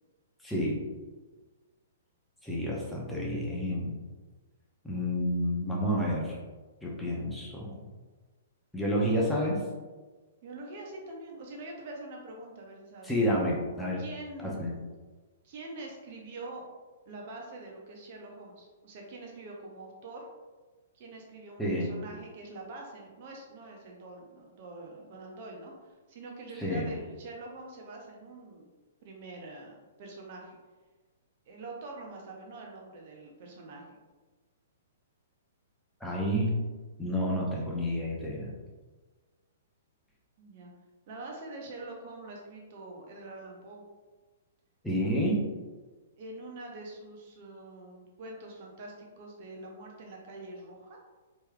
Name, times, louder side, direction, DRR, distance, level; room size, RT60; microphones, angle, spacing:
voice 1, 0.4-0.9 2.4-4.0 4.8-6.4 6.8-7.8 8.7-9.6 13.0-14.0 14.4-14.7 21.6-21.9 26.6-26.9 36.0-36.6 37.0-38.5 44.8-45.4, equal, 5° left, -5 dB, 0.9 m, -29 dB
voice 2, 10.4-13.1 14.0-14.9 15.4-16.6 17.1-20.3 20.9-28.7 29.0-30.6 31.5-33.8 40.4-40.7 41.1-43.8 46.2-51.0, right 2 dB, 40° right, 0 dB, 0.8 m, -45 dB
4.5 x 3.1 x 2.3 m, 1.3 s
figure-of-eight pair, 115°, 0 cm